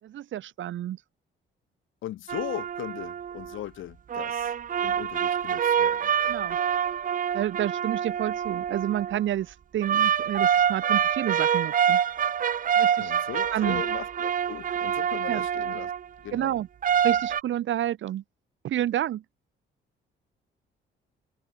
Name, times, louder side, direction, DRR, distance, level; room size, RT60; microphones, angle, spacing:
voice 1, 0.0-1.0 6.2-6.6 7.3-12.0 12.8-13.1 13.5-13.8 15.3-15.5 16.3-16.7 17.0-18.2 18.6-19.2, right 12 dB, 75° right, 3.8 m, -29 dB
voice 2, 2.0-4.5 4.8-6.1 13.0-15.9 16.2-16.6, left 13 dB, 80° left, 2.5 m, -38 dB
sound 1, 2.3-3.6 4.1-9.2 9.8-16.0 16.8-17.4, right 8 dB, 45° right, 0.6 m, -26 dB
cardioid pair, 90°, 20 cm